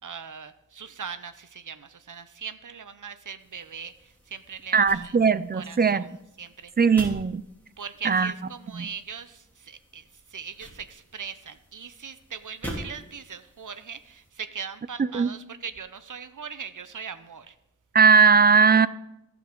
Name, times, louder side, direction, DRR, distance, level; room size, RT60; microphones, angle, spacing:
voice 1, 0.0-5.1 5.5-6.1 6.4-6.7 7.8-17.5, right 6 dB, 70° right, 0.6 m, -40 dB
sound 1, 3.4-14.3, equal, 5° left, 2.6 m, -45 dB
voice 2, 4.7-6.1 6.8-7.4 8.0-8.3 8.7-8.8 15.1-15.3 17.9-18.9, right 5 dB, 30° right, 0.4 m, -19 dB
14.5 x 5.9 x 3.7 m
wide cardioid pair, 55°, 32 cm